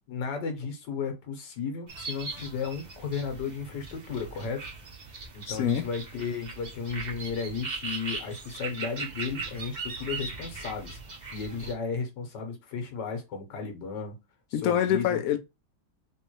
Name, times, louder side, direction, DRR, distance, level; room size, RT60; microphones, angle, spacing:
voice 1, 0.1-4.7 5.3-11.0 11.3-14.2 14.5-15.2, left 5 dB, 85° left, 1.7 m, -34 dB
sound 1, 1.9-11.7, right 4 dB, 40° right, 0.6 m, -39 dB
voice 2, 5.5-5.8 14.5-15.4, left 10 dB, 65° left, 0.9 m, -25 dB
3.4 x 3.1 x 3.0 m
omnidirectional pair, 1.8 m